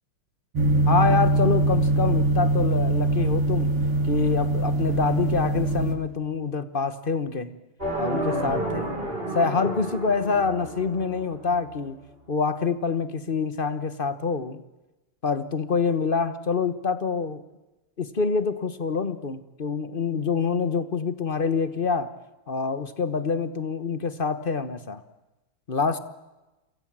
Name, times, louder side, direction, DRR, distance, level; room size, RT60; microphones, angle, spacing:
sound 1, 0.6-6.0, right 2 dB, 90° right, 3.4 m, -22 dB
voice 1, 0.9-3.7 4.0-7.5 8.0-8.9 9.3-12.0 12.3-14.6 15.2-17.4 18.0-22.1 22.5-25.0 25.7-26.0, left 5 dB, 35° left, 13 dB, 0.9 m, -26 dB
sound 2, 7.8-11.8, right 1 dB, 25° right, 7.3 m, -31 dB
29.0 x 23.5 x 7.5 m, 1.0 s
omnidirectional pair, 2.4 m